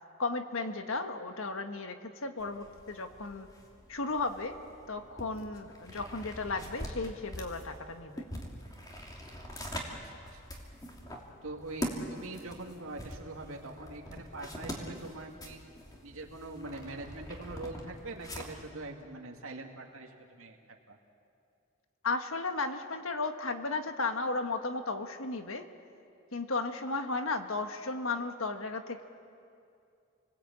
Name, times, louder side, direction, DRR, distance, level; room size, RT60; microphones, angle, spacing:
voice 1, 0.2-3.5 3.9-4.6 4.9-8.2 22.0-25.7 26.3-29.0, left 3 dB, 75° left, 7 dB, 1.6 m, -34 dB
sound 1, 2.4-18.7, equal, 15° left, 2.8 m, -44 dB
voice 2, 9.9-10.5 11.4-15.6 16.0-20.6 20.9-21.0, right 2 dB, 75° right, 1 dB, 2.3 m, -43 dB
29.5 x 20.0 x 8.8 m, 2.5 s
head